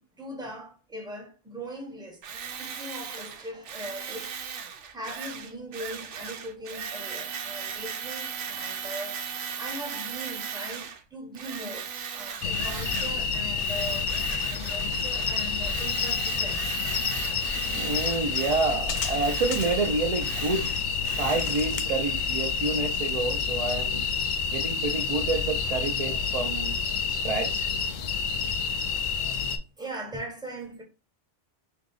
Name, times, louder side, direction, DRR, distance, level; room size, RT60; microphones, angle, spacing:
voice 1, 0.2-4.3 4.6-9.2 9.5-16.7 20.6-20.7 21.0-21.3 22.8-23.0 25.8-26.0 28.0-28.3 28.9-29.1 29.8-30.8, right 1 dB, 5° right, 0.7 m, -40 dB
Tools, 2.2-11.0 11.4-13.3 13.6-21.7, right 7 dB, 90° right, 1.0 m, -38 dB
sound 1, 12.4-29.6, left 5 dB, 60° left, 0.5 m, -29 dB
voice 2, 17.7-20.7 21.2-24.1 24.5-26.8 27.0-27.7, right 3 dB, 45° right, 0.5 m, -29 dB
2.9 x 2.8 x 3.8 m
omnidirectional pair, 1.2 m